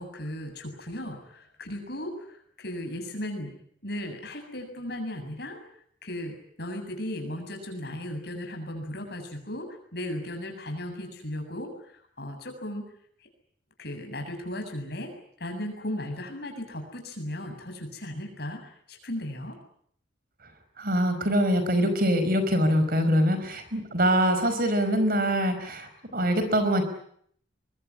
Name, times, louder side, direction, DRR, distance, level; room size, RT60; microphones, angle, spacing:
voice 1, 0.0-3.5 3.8-5.6 6.0-11.7 12.2-12.8 13.8-15.1 15.4-19.6, left 1 dB, 55° left, 4 dB, 7.6 m, -36 dB
voice 2, 20.8-26.8, equal, 50° right, 9 dB, 5.2 m, -24 dB
23.5 x 22.5 x 9.8 m, 0.65 s
head